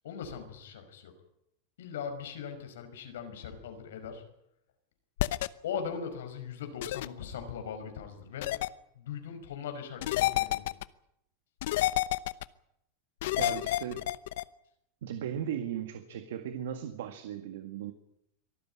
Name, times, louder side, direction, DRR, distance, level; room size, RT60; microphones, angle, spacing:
voice 1, 0.0-1.2 1.8-4.2 5.6-8.6 8.9-10.7, left 7 dB, 90° left, 6 dB, 5.4 m, -40 dB
sound 1, 5.2-5.5 6.8-7.1 8.4-8.7 10.0-10.8 11.6-12.4 13.2-14.4, left 16 dB, 70° left, 0.9 m, -29 dB
voice 2, 13.4-14.1 15.0-17.9, right 9 dB, 80° right, 8 dB, 1.9 m, -37 dB
24.0 x 13.5 x 9.9 m, 0.77 s
supercardioid pair, 145°, 0 cm